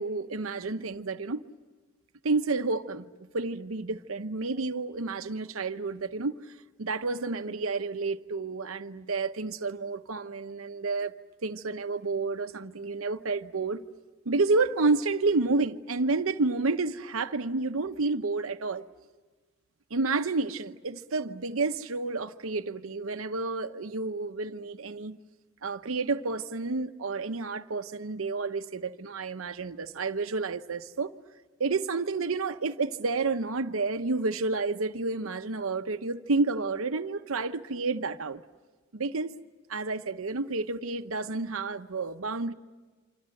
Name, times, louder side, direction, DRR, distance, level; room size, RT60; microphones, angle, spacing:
voice 1, 0.0-1.4 2.2-6.3 6.8-11.1 11.4-13.8 14.3-18.8 19.9-25.2 25.6-31.1 31.6-38.4 38.9-39.3 39.7-42.5, right 3 dB, 85° right, 0.9 m, -30 dB
28.0 x 26.5 x 7.7 m
head